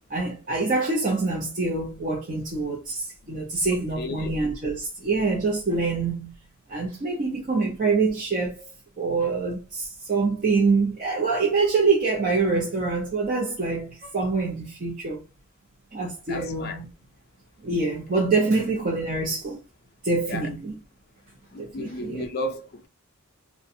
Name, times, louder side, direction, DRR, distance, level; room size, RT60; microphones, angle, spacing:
voice 1, 0.1-6.3 6.7-8.7 9.0-15.2 15.9-16.9 17.6-19.6 20.0-20.8 21.6-22.3, right 3 dB, 40° right, 0.5 m, -25 dB
voice 2, 4.0-4.3 16.3-16.8 20.3-20.5 21.5-22.9, left 1 dB, 45° left, 0.4 m, -33 dB
2.5 x 2.2 x 2.6 m
head